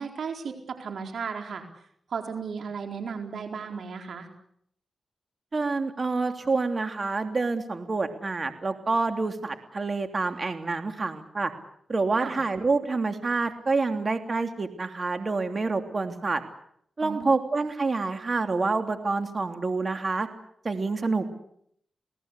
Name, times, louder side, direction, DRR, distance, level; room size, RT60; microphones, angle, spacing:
voice 1, 0.0-1.6 2.1-4.3 12.2-12.3 17.0-17.3, right 6 dB, 75° right, 4 dB, 4.3 m, -35 dB
voice 2, 5.5-11.5 11.9-16.4 17.0-20.3 20.6-21.3, right 3 dB, 45° right, 6 dB, 3.1 m, -27 dB
29.0 x 18.5 x 8.3 m, 0.70 s
cardioid pair, 55°, 0 cm